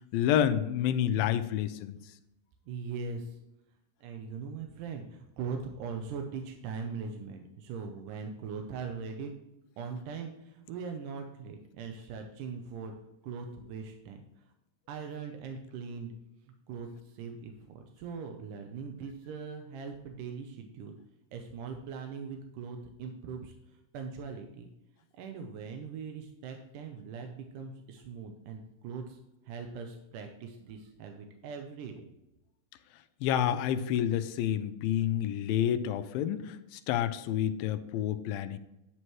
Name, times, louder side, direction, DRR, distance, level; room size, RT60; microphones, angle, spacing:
voice 1, 0.1-2.0 33.2-38.6, left 10 dB, 85° left, 10 dB, 2.3 m, -29 dB
voice 2, 2.7-3.4 4.0-9.3 9.8-12.9 13.2-14.2 14.9-16.1 16.7-21.0 21.3-24.7 25.1-29.2 29.4-32.1, right 5 dB, 75° right, 4 dB, 2.2 m, -41 dB
9.9 x 9.8 x 3.1 m, 0.89 s
omnidirectional pair, 4.1 m